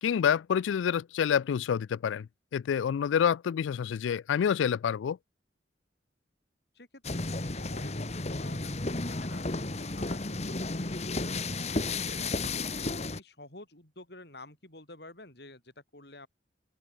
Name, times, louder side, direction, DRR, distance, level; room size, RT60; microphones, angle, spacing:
voice 1, 0.0-2.3 2.5-5.2, left 8 dB, 85° left, 0.3 m, -27 dB
voice 2, 6.7-9.5 10.0-16.3, left 2 dB, 60° left, 6.9 m, -50 dB
sound 1, 7.0-13.2, left 2 dB, 35° left, 1.5 m, -33 dB
open air
head